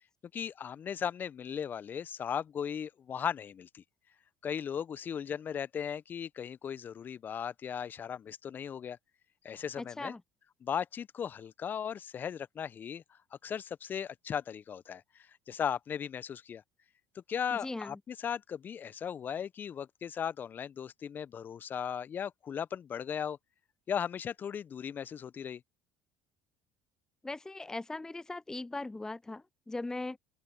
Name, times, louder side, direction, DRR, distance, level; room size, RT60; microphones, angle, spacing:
voice 1, 0.3-3.8 4.4-9.0 9.4-10.1 10.6-16.6 17.1-23.4 23.9-25.6, left 8 dB, 40° left, 0.9 m, -37 dB
voice 2, 9.8-10.2 17.6-18.0 27.2-30.2, left 2 dB, 10° left, 0.6 m, -39 dB
open air
hypercardioid pair, 65°, 5 cm